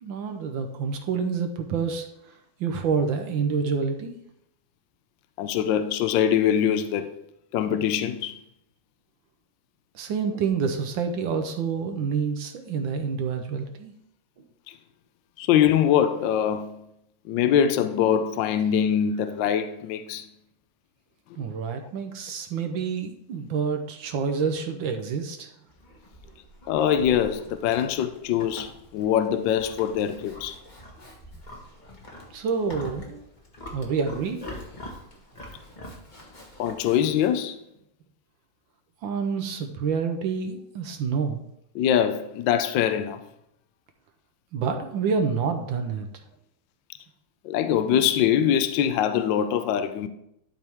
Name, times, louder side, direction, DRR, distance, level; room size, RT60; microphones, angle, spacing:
voice 1, 0.0-2.1 2.6-4.1 9.9-13.9 21.4-25.5 32.3-33.2 33.7-34.5 39.0-41.4 44.5-46.1, right 5 dB, 70° right, 1.5 m, -28 dB
voice 2, 5.4-7.1 7.5-8.4 14.7-14.8 15.4-16.8 17.3-20.2 26.7-30.6 36.6-37.6 41.7-43.2 47.4-50.1, left 9 dB, 70° left, 1.2 m, -23 dB
Livestock farm animals working animals, 25.7-37.3, left 1 dB, 25° left, 1.1 m, -44 dB
12.0 x 4.6 x 3.5 m
omnidirectional pair, 2.3 m